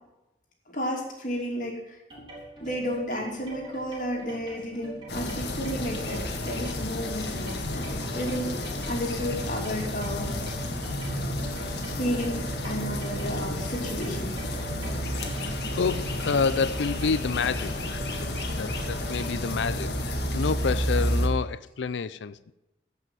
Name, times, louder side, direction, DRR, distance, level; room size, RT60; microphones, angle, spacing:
voice 1, 0.7-1.8 2.6-10.3 12.0-14.4, equal, 45° left, 2.8 m, -32 dB
sound 1, 2.1-19.6, right 1 dB, 25° right, 4.1 m, -44 dB
sound 2, 5.1-21.3, left 1 dB, 65° left, 1.7 m, -31 dB
voice 2, 15.4-22.5, left 5 dB, 80° left, 0.5 m, -29 dB
15.0 x 5.8 x 7.6 m
head